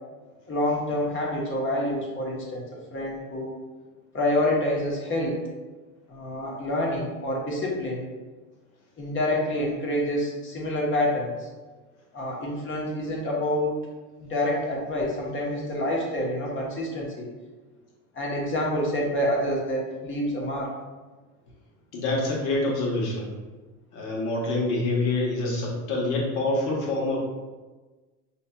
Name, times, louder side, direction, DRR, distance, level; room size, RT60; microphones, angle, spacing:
voice 1, 0.5-3.6 4.1-5.4 6.1-8.1 9.0-11.5 12.1-13.7 14.2-17.3 18.1-20.7, left 1 dB, 25° left, -3 dB, 1.1 m, -27 dB
voice 2, 21.9-23.3 23.9-27.2, left 2 dB, 65° left, -4 dB, 1.5 m, -26 dB
5.1 x 2.8 x 2.3 m, 1.3 s
hypercardioid pair, 90°, 44 cm